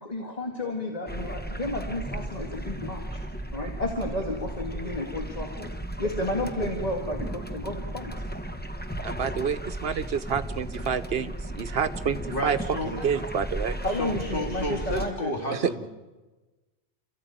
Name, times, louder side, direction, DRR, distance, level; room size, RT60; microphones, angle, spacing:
voice 1, 0.0-3.2 3.5-5.7 6.0-8.1 13.8-15.3, left 1 dB, 35° left, 2.1 m, -32 dB
sound 1, 1.1-15.1, right 1 dB, 10° left, 1.0 m, -35 dB
voice 2, 9.0-12.6 12.9-13.8 15.5-15.6, right 7 dB, 65° right, 1.2 m, -29 dB
voice 3, 12.3-12.9 14.0-15.9, equal, 55° left, 3.4 m, -32 dB
28.0 x 14.5 x 9.2 m
omnidirectional pair, 1.1 m